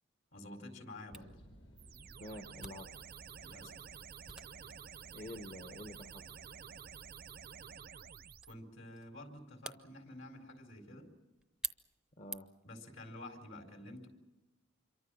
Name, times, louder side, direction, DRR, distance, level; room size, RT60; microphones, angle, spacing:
voice 1, 0.3-1.3 3.4-3.7 8.5-11.1 12.6-14.1, left 1 dB, 65° left, 5 dB, 4.3 m, -50 dB
sound 1, 1.1-7.1, equal, 85° left, 5.6 m, -63 dB
Camera, 1.1-12.7, right 2 dB, 5° right, 0.7 m, -51 dB
sound 2, 1.8-8.6, right 6 dB, 50° right, 0.7 m, -51 dB
voice 2, 2.2-2.9 5.1-6.2 12.2-12.5, left 1 dB, 40° left, 6 dB, 1.1 m, -47 dB
27.0 x 23.5 x 6.4 m, 1.1 s
head